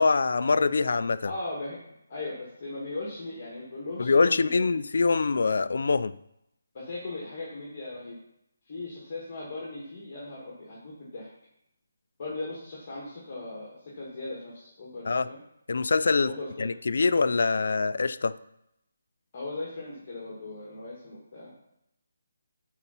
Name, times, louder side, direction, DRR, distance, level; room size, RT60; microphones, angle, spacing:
voice 1, 0.0-1.3 4.0-6.2 15.1-15.3 15.7-16.3 16.6-18.4, left 4 dB, 60° left, 14 dB, 0.4 m, -24 dB
voice 2, 1.2-4.6 6.7-8.2 8.6-11.3 12.2-15.4 16.2-16.9 19.3-21.5, left 2 dB, 30° left, -4 dB, 1.8 m, -38 dB
8.9 x 4.1 x 5.7 m, 0.82 s
hypercardioid pair, 170°, 0 cm